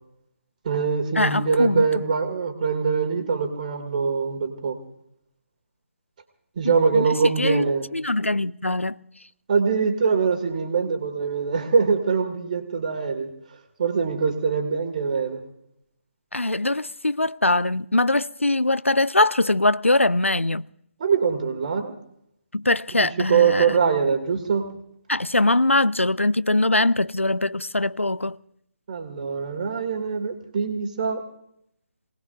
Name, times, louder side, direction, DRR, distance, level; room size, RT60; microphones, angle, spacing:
voice 1, 0.6-4.8 6.6-7.9 9.5-13.3 13.8-15.4 21.0-22.0 23.0-24.7 28.9-31.2, right 5 dB, 35° right, 2.3 m, -23 dB
voice 2, 1.2-2.0 6.6-7.7 7.9-9.0 16.3-20.6 22.5-23.8 25.1-28.4, left 2 dB, 85° left, 0.5 m, -22 dB
26.5 x 19.0 x 2.6 m
figure-of-eight pair, 145°, 7 cm